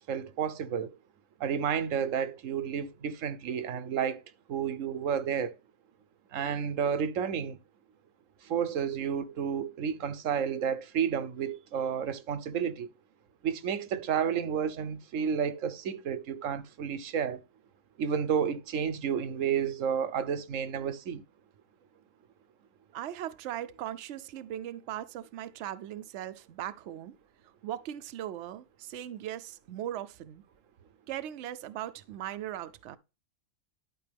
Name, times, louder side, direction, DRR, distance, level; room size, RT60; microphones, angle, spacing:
voice 1, 0.1-0.9 1.4-4.2 4.5-5.5 6.3-7.6 8.5-12.9 13.4-17.4 18.0-21.2, right 7 dB, 90° right, 1.2 m, -31 dB
voice 2, 22.9-27.1 27.6-30.4 31.1-33.0, right 12 dB, 70° right, 0.9 m, -39 dB
12.0 x 4.8 x 3.4 m
omnidirectional pair, 1.3 m